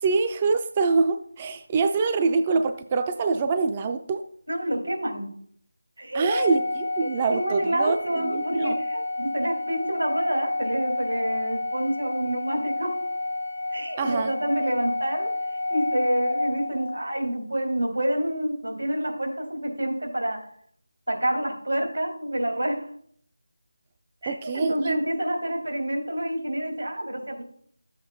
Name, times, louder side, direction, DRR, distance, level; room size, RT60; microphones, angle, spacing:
voice 1, 0.0-4.2 6.1-8.8 14.0-14.3 24.3-25.0, right 4 dB, 20° right, 7 dB, 0.3 m, -25 dB
voice 2, 4.5-5.3 6.0-6.3 7.3-12.9 13.7-20.4 21.1-22.9 24.2-27.4, right 1 dB, 90° right, 2 dB, 2.5 m, -28 dB
Organ, 6.3-17.1, left 2 dB, 65° left, 0.7 m, -30 dB
12.0 x 7.8 x 2.3 m, 0.62 s
figure-of-eight pair, 170°, 0 cm